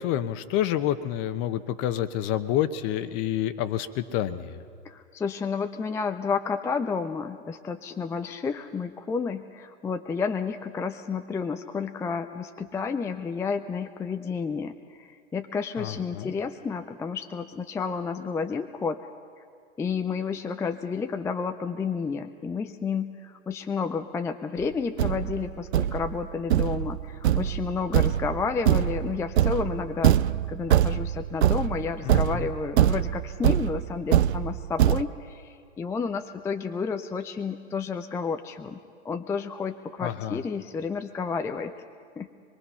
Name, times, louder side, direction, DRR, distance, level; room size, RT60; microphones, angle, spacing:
voice 1, 0.0-4.6 15.8-16.3 32.1-32.5 40.0-40.4, left 11 dB, 40° left, 12 dB, 1.1 m, -28 dB
voice 2, 4.8-19.0 19.8-30.2 30.5-38.8 39.0-41.7 42.2-42.3, left 5 dB, 10° left, 7 dB, 0.4 m, -31 dB
Thump thud, 24.6-24.7 25.0-35.0, right 11 dB, 70° right, 0.6 m, -24 dB
24.0 x 21.5 x 5.7 m, 2.2 s
hypercardioid pair, 105°, 35 cm